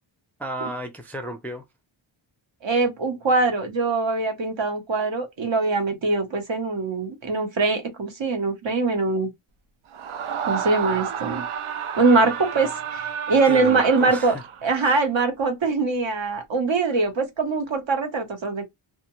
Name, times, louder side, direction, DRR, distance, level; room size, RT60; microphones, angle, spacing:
voice 1, 0.4-1.6 13.5-14.4 14.8-15.0, right 1 dB, 5° left, 0.4 m, -33 dB
voice 2, 2.6-9.3 10.5-11.5 12.0-14.3 14.6-18.7, right 3 dB, 65° right, 1.0 m, -23 dB
Screaming, 9.9-14.8, right 7 dB, 80° right, 0.6 m, -31 dB
2.4 x 2.1 x 2.9 m
wide cardioid pair, 70°, 49 cm